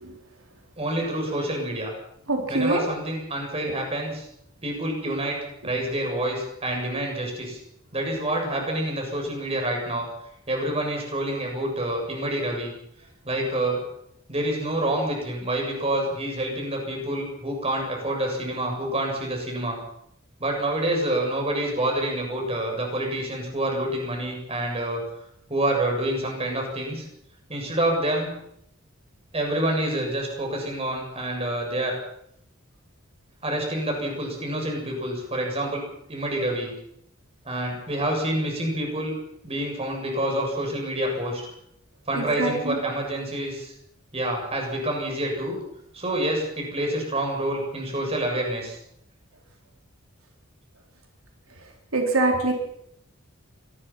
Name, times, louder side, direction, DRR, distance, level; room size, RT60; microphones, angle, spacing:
voice 1, 0.8-1.9 2.5-4.3 4.6-7.6 7.9-10.1 10.5-12.7 13.3-13.8 14.3-19.8 20.4-25.0 25.5-27.1 27.5-28.3 29.3-32.0 33.4-35.8 36.1-36.7 37.4-39.1 39.4-41.4 42.1-43.7 44.1-45.6 45.9-48.8, right 1 dB, 30° right, 1 dB, 7.5 m, -27 dB
voice 2, 2.3-2.8 42.1-42.8 51.9-52.5, right 2 dB, 90° right, 2 dB, 4.3 m, -23 dB
25.0 x 20.0 x 5.9 m, 0.74 s
head